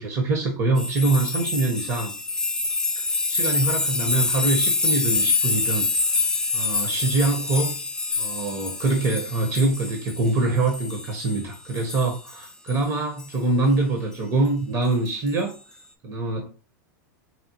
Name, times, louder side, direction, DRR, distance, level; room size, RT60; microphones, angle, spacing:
voice 1, 0.0-2.1 2.9-5.9 6.5-7.7 8.2-15.6 16.0-16.5, right 2 dB, 30° right, 2 dB, 0.8 m, -24 dB
sound 1, 0.8-11.4 11.7-12.7 13.2-13.3 15.1-15.3, left 3 dB, 5° left, 0.3 m, -26 dB
4.1 x 2.0 x 2.8 m, 0.33 s
supercardioid pair, 135°, 10 cm